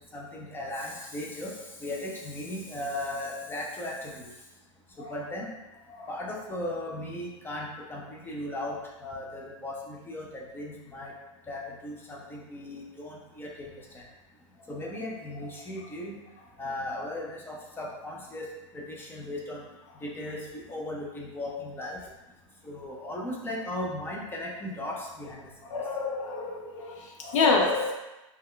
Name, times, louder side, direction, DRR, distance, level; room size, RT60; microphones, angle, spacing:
voice 1, 0.1-4.3 5.0-5.5 6.1-8.8 9.0-11.1 11.5-14.0 14.7-16.2 16.6-18.5 18.7-19.6 20.0-22.0 22.6-25.4, left 1 dB, 15° left, -2 dB, 0.4 m, -37 dB
voice 2, 25.7-27.9, left 3 dB, 70° left, 0 dB, 0.5 m, -27 dB
2.2 x 2.2 x 3.6 m, 1.0 s
hypercardioid pair, 125°, 17 cm